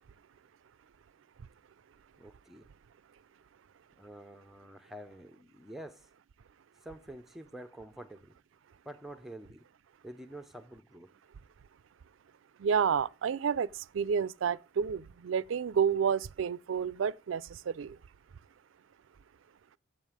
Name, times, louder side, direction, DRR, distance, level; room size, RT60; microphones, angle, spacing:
voice 1, 2.2-2.7 4.0-6.1 6.8-8.3 8.9-9.6 10.0-11.1, right 1 dB, ahead, 0.4 m, -47 dB
voice 2, 12.6-13.7 13.9-17.9, right 7 dB, 65° right, 0.4 m, -30 dB
7.7 x 7.4 x 4.8 m
head